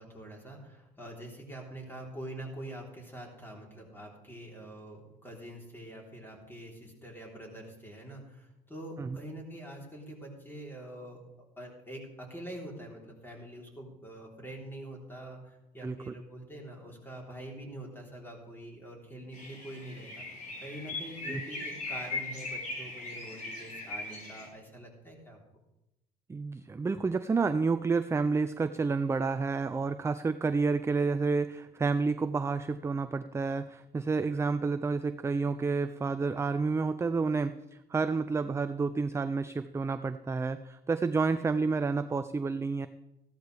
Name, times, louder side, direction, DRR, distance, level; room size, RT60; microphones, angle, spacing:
voice 1, 0.0-11.2 11.6-20.3 20.6-25.4, right 1 dB, 15° left, -1 dB, 3.7 m, -45 dB
voice 2, 15.8-16.1 21.3-21.4 26.3-37.6 37.9-42.9, right 4 dB, 15° right, 11 dB, 0.4 m, -30 dB
sound 1, 19.3-24.5, left 2 dB, 50° left, 5.4 m, -39 dB
15.0 x 12.5 x 3.4 m, 0.92 s
cardioid pair, 110°, 17 cm